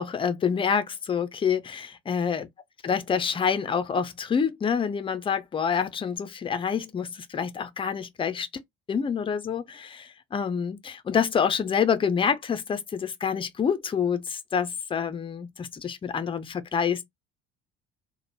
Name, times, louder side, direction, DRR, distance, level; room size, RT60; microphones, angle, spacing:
voice 1, 0.0-2.5 2.8-8.5 8.9-17.0, left 7 dB, 15° left, 0.4 m, -27 dB
3.0 x 2.0 x 2.8 m
figure-of-eight pair, 60°, 33 cm